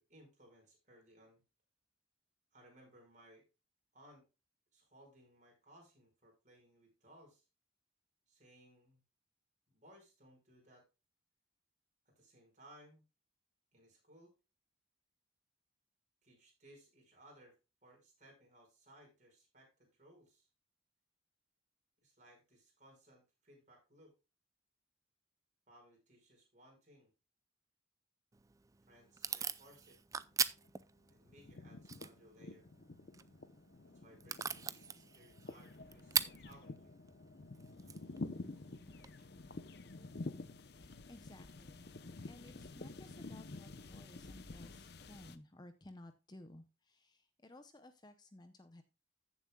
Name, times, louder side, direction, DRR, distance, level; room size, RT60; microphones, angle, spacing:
voice 1, 0.0-1.4 2.5-3.5 3.9-4.3 4.7-7.4 8.3-9.0 9.7-10.9 12.1-13.0 13.7-14.4 16.2-17.6 17.8-20.5 22.0-24.1 25.7-27.1 28.8-30.0 31.1-32.7 33.9-37.0 39.2-39.3, right 1 dB, 40° right, 1 dB, 5.2 m, -63 dB
Packing tape duct tape / Tearing, 28.3-39.1, right 6 dB, 15° right, 0.4 m, -43 dB
sound 1, 30.2-30.8 31.1-45.4, left 2 dB, 55° left, 0.8 m, -49 dB
voice 2, 40.8-41.9 42.3-48.8, left 1 dB, 20° left, 9 dB, 0.6 m, -57 dB
15.0 x 7.3 x 2.3 m, 0.28 s
head